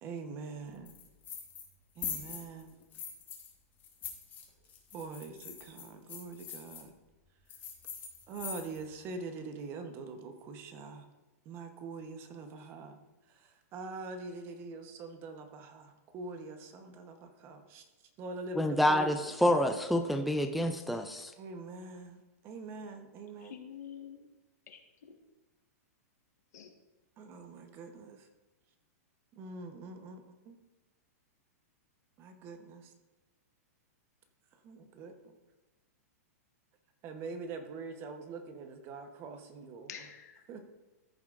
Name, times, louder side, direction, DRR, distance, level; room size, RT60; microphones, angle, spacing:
voice 1, 0.0-0.9 2.0-2.7 4.9-6.9 8.3-11.1 11.4-13.0 13.3-17.8 18.2-19.3 21.4-23.5 27.2-28.3 29.3-30.6 32.2-32.9 34.6-35.1 37.0-39.9 40.5-40.7, right 3 dB, 30° right, 7 dB, 0.9 m, -44 dB
sound 1, 0.9-1.7 2.0-3.5 3.8-6.8 7.5-8.9, left 7 dB, 20° left, 1.4 m, -43 dB
voice 2, 18.6-21.3, left 1 dB, ahead, 5 dB, 0.3 m, -28 dB
voice 3, 23.4-24.2 24.7-25.1 26.5-26.7 39.9-40.4, left 9 dB, 90° left, 3 dB, 1.6 m, -47 dB
14.0 x 7.2 x 2.5 m, 1.1 s
supercardioid pair, 160°, 9 cm